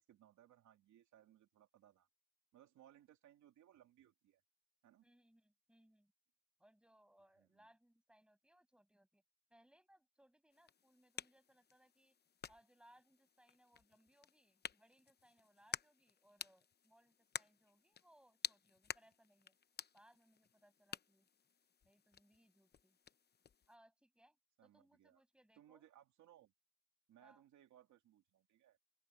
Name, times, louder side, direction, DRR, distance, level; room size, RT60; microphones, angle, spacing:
voice 1, 0.0-2.1 2.5-4.4 4.8-5.1 7.4-7.7 24.6-25.2 25.6-26.5 27.1-28.8, right 11 dB, 80° right, 2.7 m, -66 dB
voice 2, 5.0-6.1 6.6-9.2 9.5-12.2 12.5-19.6 19.9-21.3 21.8-23.0 23.7-24.4 24.6-25.8 27.2-27.4, right 1 dB, 5° right, 6.9 m, -70 dB
sound 1, 10.5-23.8, left 7 dB, 35° left, 0.8 m, -52 dB
open air
cardioid pair, 120°, 29 cm